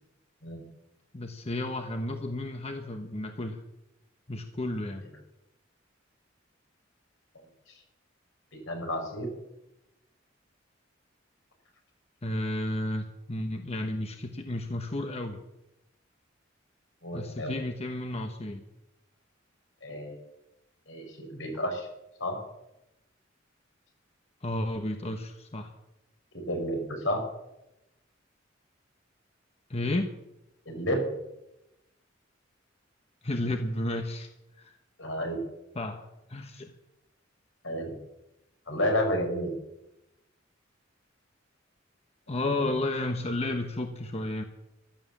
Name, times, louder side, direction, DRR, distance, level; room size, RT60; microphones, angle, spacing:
voice 1, 1.1-3.6 4.3-5.0 12.2-15.4 17.1-18.6 24.4-25.7 29.7-30.1 33.2-34.3 34.6-34.8 35.7-36.7 42.3-44.4, left 1 dB, 35° left, 6 dB, 1.0 m, -32 dB
voice 2, 7.3-7.7 8.7-9.3 17.0-17.6 19.8-20.2 20.9-21.9 22.2-22.4 26.3-27.2 30.6-31.0 35.0-35.4 37.6-37.9 38.7-39.5 42.3-42.7, equal, 75° left, 3 dB, 5.0 m, -31 dB
14.5 x 12.0 x 7.3 m, 0.91 s
head